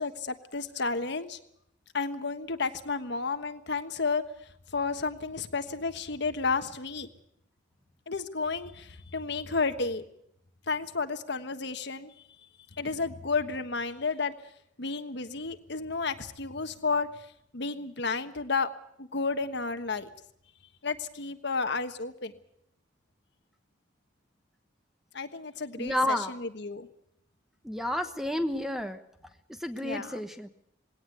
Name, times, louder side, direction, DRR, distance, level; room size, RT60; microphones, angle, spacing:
voice 1, 0.0-1.4 1.9-4.2 4.7-7.1 8.1-10.0 10.7-12.1 12.8-14.3 14.8-17.3 17.5-18.7 19.0-20.1 20.8-22.3 25.1-26.9 29.8-30.2, left 4 dB, 60° left, 8 dB, 1.4 m, -32 dB
voice 2, 25.8-26.3 27.6-29.0 29.5-30.5, left 1 dB, ahead, 8 dB, 1.1 m, -30 dB
19.5 x 17.5 x 8.2 m, 0.71 s
head